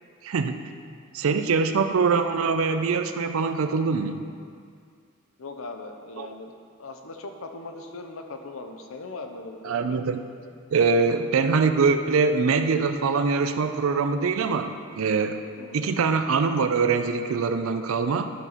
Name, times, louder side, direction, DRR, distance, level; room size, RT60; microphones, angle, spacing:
voice 1, 0.2-0.6 1.1-4.2 6.2-6.3 9.6-10.2 10.7-15.4 15.7-18.3, right 4 dB, 65° right, 8 dB, 0.4 m, -23 dB
voice 2, 5.4-6.5 6.8-10.0 15.6-15.9, left 3 dB, 65° left, 5 dB, 0.7 m, -39 dB
11.0 x 4.4 x 4.1 m, 2.2 s
head